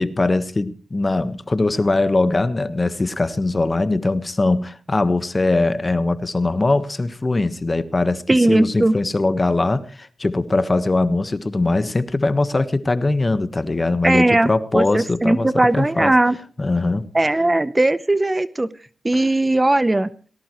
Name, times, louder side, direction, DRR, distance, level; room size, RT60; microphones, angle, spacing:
voice 1, 0.0-16.1 16.6-17.0, left 2 dB, 30° left, 12 dB, 1.3 m, -21 dB
voice 2, 8.3-8.9 14.0-16.4 17.1-18.7 19.0-20.1, right 2 dB, 20° right, 15 dB, 0.8 m, -18 dB
19.0 x 17.0 x 3.1 m, 0.39 s
cardioid pair, 60°, 0 cm